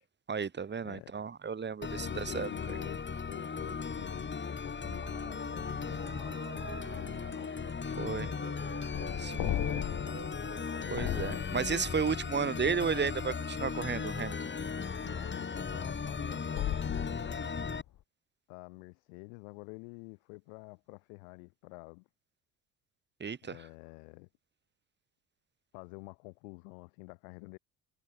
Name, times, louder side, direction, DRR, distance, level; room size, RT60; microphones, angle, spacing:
voice 1, 0.3-2.8 8.0-8.3 9.2-9.6 10.9-14.4 23.2-23.6, right 6 dB, 25° right, 2.2 m, -33 dB
sound 1, 1.8-17.8, left 5 dB, 30° left, 5.7 m, -37 dB
voice 2, 1.9-8.7 9.6-9.9 10.6-11.2 15.0-17.6 18.5-22.1 23.4-24.3 25.7-27.6, left 40 dB or more, 80° left, 7.2 m, -48 dB
sound 2, 4.8-11.4 11.6-12.4 12.7-14.8, right 11 dB, 50° right, 5.7 m, -52 dB
sound 3, 8.9-12.2 16.5-17.8, left 13 dB, 55° left, 4.3 m, -37 dB
supercardioid pair, 85°, 40 cm